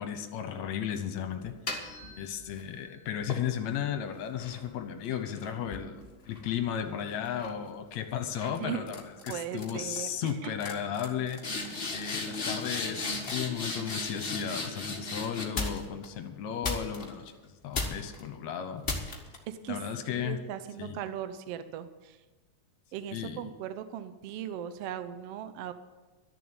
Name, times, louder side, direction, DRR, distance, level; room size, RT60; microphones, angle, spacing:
voice 1, 0.0-1.5 2.1-11.4 11.9-17.3 17.6-18.8 19.7-20.4 20.8-21.0 23.1-23.4, left 9 dB, 70° left, 7 dB, 2.1 m, -34 dB
sound 1, 1.4-2.7 3.3-6.9 7.2-7.6 8.4-8.6 8.9-9.3 9.6-10.0 10.3-10.4 10.6-16.0 16.6-17.3 17.7-18.2 18.8-19.4, left 3 dB, 45° left, 0.7 m, -36 dB
voice 2, 9.3-10.5 19.5-19.8 20.2-22.2 22.9-25.7, right 10 dB, 75° right, 11 dB, 1.4 m, -38 dB
12.5 x 7.0 x 8.8 m, 1.2 s
omnidirectional pair, 3.6 m